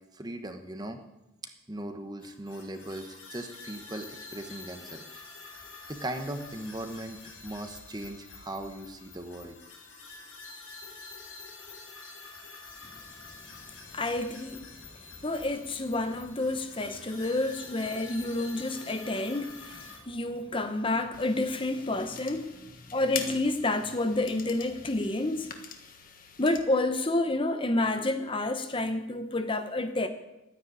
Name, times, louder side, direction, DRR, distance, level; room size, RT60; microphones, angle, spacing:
voice 1, 0.1-1.0 1.4-5.2 5.9-9.6, right 1 dB, 20° right, 1.1 m, -39 dB
sound 1, 2.2-20.0, left 4 dB, 75° left, 4.4 m, -47 dB
voice 2, 13.9-22.6 22.9-25.5 26.4-30.1, left 2 dB, 25° left, 0.9 m, -29 dB
sound 2, 21.1-26.6, left 7 dB, 40° left, 1.4 m, -43 dB
13.0 x 9.9 x 9.0 m
head